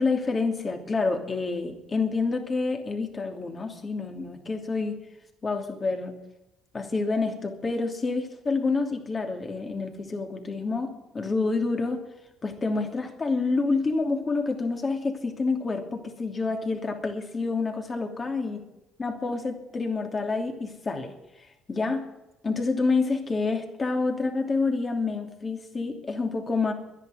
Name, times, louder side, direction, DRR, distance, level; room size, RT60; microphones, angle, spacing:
voice 1, 0.0-5.0 5.4-6.1 6.7-12.0 12.4-18.6 19.0-21.1 21.7-22.0 22.4-26.7, left 3 dB, 30° left, 4 dB, 2.9 m, -28 dB
11.0 x 10.5 x 9.3 m, 0.94 s
cardioid pair, 95°, 0 cm